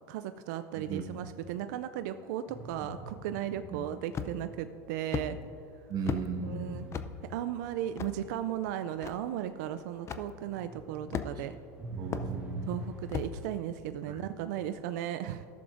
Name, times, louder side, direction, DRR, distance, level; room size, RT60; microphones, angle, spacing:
voice 1, 0.1-5.4 6.4-6.9 7.3-11.6 12.7-15.5, right 11 dB, 75° right, 10 dB, 0.3 m, -36 dB
voice 2, 0.7-1.3 2.8-2.9 3.7-3.8 5.9-6.9 11.9-12.9 14.1-14.2, right 5 dB, 45° right, 3 dB, 1.3 m, -37 dB
sound 1, 2.5-4.1 6.4-10.2 10.5-13.4, right 1 dB, 15° right, 1.0 m, -45 dB
sound 2, 4.1-4.5 5.1-5.3 6.1-6.3 6.9-7.1 8.0-8.1 9.0-9.1 10.1-10.3 11.1-11.5 12.1-12.3 13.1-13.3, left 7 dB, 30° left, 0.5 m, -34 dB
14.5 x 6.8 x 2.5 m, 2.7 s
supercardioid pair, 110°, 10 cm